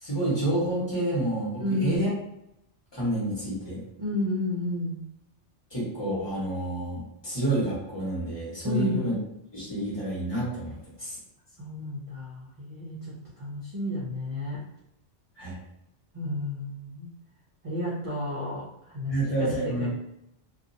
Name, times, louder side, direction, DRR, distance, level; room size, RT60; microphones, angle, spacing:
voice 1, 0.0-2.1 2.9-3.8 5.7-9.1 9.5-11.2 15.4-15.6 19.1-19.9, right 1 dB, 20° left, -8 dB, 1.2 m, -29 dB
voice 2, 1.6-2.0 4.0-5.0 8.6-9.0 11.6-14.6 16.1-17.1 17.6-19.9, left 2 dB, 40° right, -6 dB, 0.5 m, -31 dB
2.7 x 2.4 x 2.6 m, 0.80 s
omnidirectional pair, 1.2 m